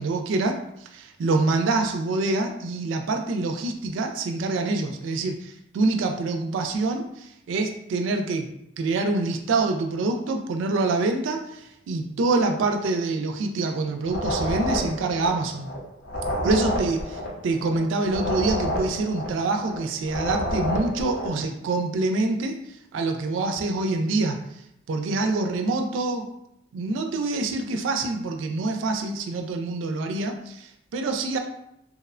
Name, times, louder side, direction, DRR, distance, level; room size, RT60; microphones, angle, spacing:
voice 1, 0.0-15.7 16.4-22.6 22.9-24.4 24.9-26.3 26.7-31.4, right 3 dB, 80° right, 4 dB, 0.3 m, -26 dB
sound 1, 14.0-21.4, equal, 65° left, 0.6 m, -29 dB
2.8 x 2.0 x 2.4 m, 0.78 s
head